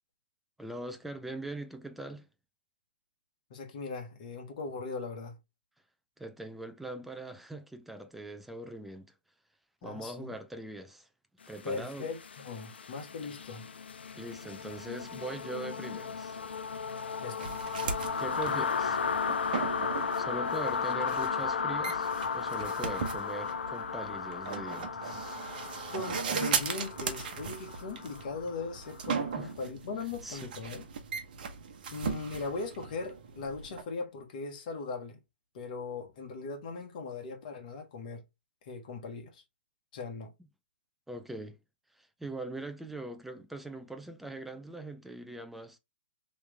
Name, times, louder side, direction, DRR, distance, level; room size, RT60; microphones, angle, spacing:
voice 1, 0.6-2.3 6.2-9.1 9.8-11.1 11.5-12.1 14.2-16.4 18.2-19.0 20.2-25.4 29.4-29.5 30.2-30.6 41.1-41.6 42.0-45.8, right 1 dB, 5° right, 0.5 m, -41 dB
voice 2, 3.5-5.4 9.8-10.3 11.6-13.7 17.2-17.5 25.9-30.8 31.9-35.2 35.5-38.2 38.6-39.4 39.9-40.3, left 4 dB, 50° left, 1.3 m, -39 dB
sound 1, 11.5-29.3, left 6 dB, 85° left, 0.4 m, -35 dB
sound 2, 17.4-33.8, right 6 dB, 55° right, 1.0 m, -38 dB
3.3 x 3.1 x 3.3 m
hypercardioid pair, 140°, 6 cm